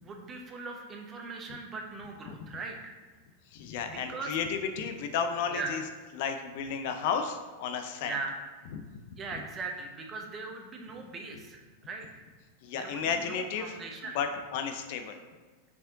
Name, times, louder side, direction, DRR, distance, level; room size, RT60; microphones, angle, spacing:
voice 1, 0.0-2.9 3.8-4.4 5.5-5.8 8.0-8.4 9.2-12.1 12.7-14.2, right 4 dB, 25° right, 2 dB, 1.0 m, -40 dB
voice 2, 3.5-5.8 6.1-8.1 8.7-8.9 12.6-13.8 14.1-15.2, left 6 dB, 50° left, 6 dB, 0.5 m, -33 dB
5.9 x 4.2 x 3.8 m, 1.4 s
figure-of-eight pair, 90°, 0 cm